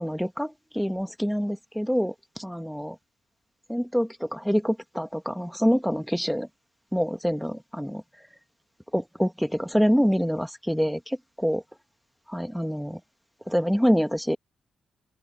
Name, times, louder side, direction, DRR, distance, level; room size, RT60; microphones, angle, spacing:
voice 1, 0.0-3.0 3.7-6.5 6.9-8.0 8.9-11.6 12.3-13.0 13.5-14.4, equal, ahead, 1.7 m, -26 dB
open air
hypercardioid pair, 45°, 0 cm